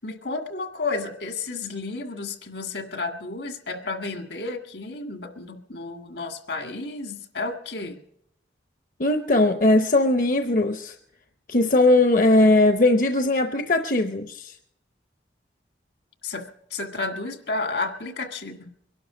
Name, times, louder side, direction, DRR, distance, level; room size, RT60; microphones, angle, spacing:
voice 1, 0.0-8.0 16.2-16.4 16.7-18.7, left 3 dB, 70° left, 7 dB, 1.8 m, -32 dB
voice 2, 9.0-11.0 11.5-14.6, left 2 dB, 45° left, 8 dB, 0.7 m, -19 dB
23.0 x 12.0 x 5.0 m, 0.74 s
head